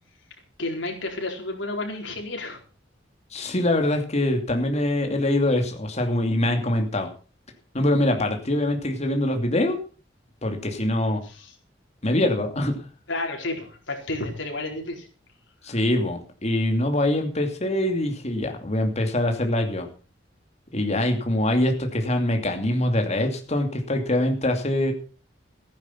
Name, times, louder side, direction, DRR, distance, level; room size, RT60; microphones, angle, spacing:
voice 1, 0.6-2.6 11.2-11.5 13.1-15.1, left 2 dB, 75° left, 2 dB, 4.6 m, -31 dB
voice 2, 3.3-7.1 7.7-9.8 10.4-11.3 12.0-12.7 15.6-19.9 20.7-24.9, left 1 dB, 35° left, 4 dB, 2.7 m, -24 dB
15.0 x 10.5 x 5.9 m, 0.37 s
head